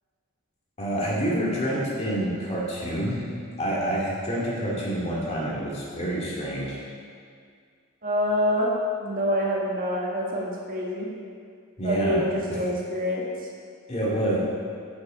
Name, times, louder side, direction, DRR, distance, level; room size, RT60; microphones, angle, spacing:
voice 1, 0.8-3.2 3.6-6.8 11.8-12.2 13.9-14.4, right 1 dB, 30° left, -6 dB, 2.2 m, -27 dB
voice 2, 8.0-8.7 9.0-11.1 11.8-13.3, equal, 40° right, -2 dB, 1.3 m, -26 dB
9.9 x 6.8 x 4.8 m, 2.2 s
head